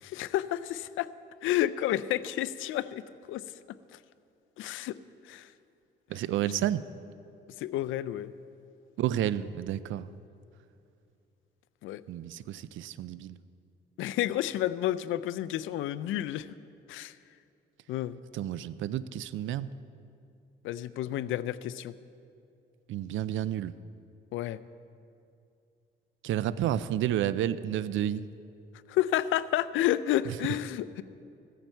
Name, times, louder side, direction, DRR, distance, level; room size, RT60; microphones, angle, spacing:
voice 1, 0.0-1.1 1.4-3.0 3.3-3.4 4.6-5.0 5.3-5.5 7.6-8.3 11.8-12.0 14.0-16.5 16.9-17.1 17.9-18.2 20.6-21.9 24.3-24.6 28.9-31.0, left 13 dB, 85° left, 16 dB, 0.5 m, -30 dB
voice 2, 6.1-6.8 9.0-10.1 12.1-13.4 18.3-19.7 22.9-23.7 26.2-28.2, right 11 dB, 75° right, 16 dB, 0.5 m, -30 dB
15.5 x 14.5 x 4.5 m, 2.6 s
cardioid pair, 90°, 20 cm